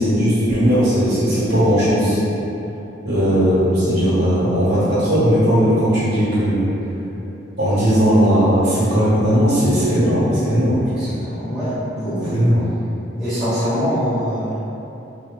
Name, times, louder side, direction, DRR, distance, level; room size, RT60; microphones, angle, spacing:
voice 1, 0.0-2.2 3.0-6.7 7.6-10.8 12.3-12.6, equal, 60° right, -11 dB, 1.1 m, -17 dB
voice 2, 10.8-12.3 13.2-14.7, equal, 5° right, -15 dB, 1.2 m, -24 dB
3.5 x 2.9 x 2.2 m, 2.9 s
head